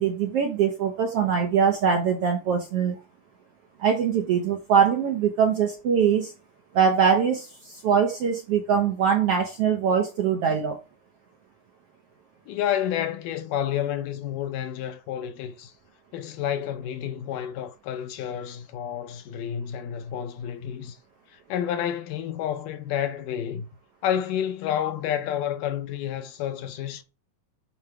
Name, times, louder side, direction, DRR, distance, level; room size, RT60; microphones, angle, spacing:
voice 1, 0.0-3.0 3.8-6.3 6.7-10.8, right 7 dB, 70° right, 1.4 m, -22 dB
voice 2, 12.5-15.7 16.1-21.0 21.3-23.7 24.0-27.0, left 10 dB, 80° left, 2.3 m, -30 dB
8.8 x 3.3 x 4.9 m
omnidirectional pair, 3.9 m